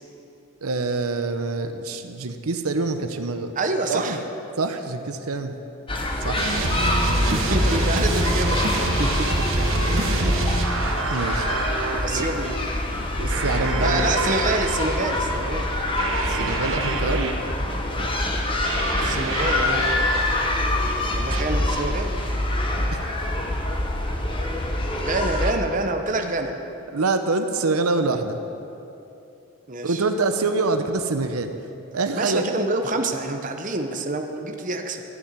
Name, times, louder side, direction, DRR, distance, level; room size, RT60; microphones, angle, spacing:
voice 1, 0.6-3.5 3.9-4.2 4.6-5.6 6.2-6.4 9.9-10.3 10.7-10.8 11.1-11.6 12.1-12.5 13.2-14.0 16.2-17.3 26.2-26.3 26.9-28.4 29.8-31.5 31.9-32.5, right 3 dB, 80° right, 7 dB, 0.8 m, -26 dB
voice 2, 3.6-4.2 7.3-9.1 12.0-12.5 13.8-15.7 19.0-19.8 21.1-22.1 25.0-26.6 29.7-30.0 32.2-35.0, right 2 dB, 35° right, 5 dB, 0.9 m, -26 dB
sound 1, 5.9-25.5, left 1 dB, 25° left, 1.0 m, -25 dB
sound 2, 6.3-12.0 13.3-15.0 16.0-17.3 18.6-20.3 21.3-21.4, right 2 dB, 65° right, 1.4 m, -26 dB
13.5 x 7.0 x 9.5 m, 2.8 s
head